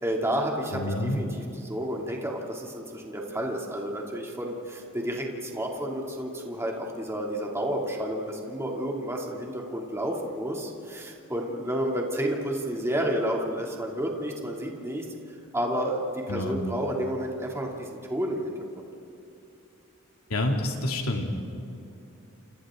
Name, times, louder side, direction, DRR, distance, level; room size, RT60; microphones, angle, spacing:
voice 1, 0.0-15.0 15.5-18.9, equal, 15° right, -1 dB, 2.8 m, -31 dB
voice 2, 0.7-1.2 16.3-16.6 20.3-21.3, left 1 dB, 85° left, 1 dB, 2.8 m, -28 dB
29.0 x 28.0 x 3.9 m, 2.8 s
head